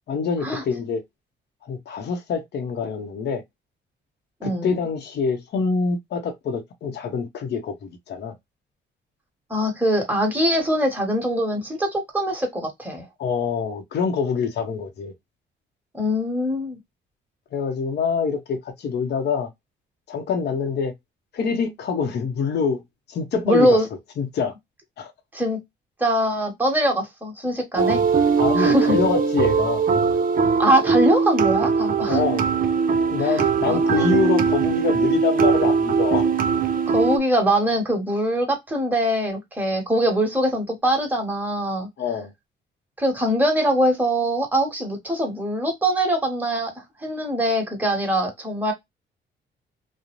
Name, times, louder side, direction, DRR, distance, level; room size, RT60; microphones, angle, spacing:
voice 1, 0.1-1.0 1.6-3.4 4.4-8.3 13.2-15.1 17.5-19.5 20.1-20.9 21.3-22.8 23.1-23.8 24.2-24.5 25.0-25.1 28.4-29.8 32.1-32.5 33.1-36.3 42.0-42.3, left 5 dB, 60° left, 0.7 m, -25 dB
voice 2, 4.4-4.7 9.5-13.1 15.9-16.8 23.4-23.8 25.3-25.6 26.0-28.0 28.6-29.0 30.6-32.2 33.2-33.4 33.7-34.1 36.9-41.9 43.0-46.7 47.0-48.7, equal, 10° right, 1.2 m, -22 dB
sound 1, 27.8-37.2, right 5 dB, 45° right, 0.5 m, -20 dB
2.5 x 2.0 x 2.9 m
cardioid pair, 90°, 20 cm